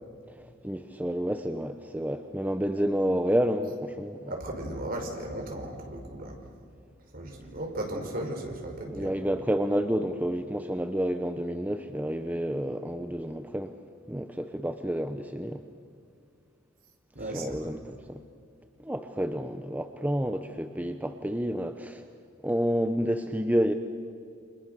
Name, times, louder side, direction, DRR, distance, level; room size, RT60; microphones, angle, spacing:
voice 1, 0.6-4.3 8.9-13.7 14.1-15.6 17.3-18.2 18.8-22.0 22.4-23.7, equal, 10° right, 7 dB, 0.8 m, -29 dB
voice 2, 4.3-6.4 7.1-9.1 17.1-17.8, right 1 dB, 50° right, 2 dB, 5.0 m, -36 dB
29.0 x 27.0 x 6.7 m, 2.4 s
head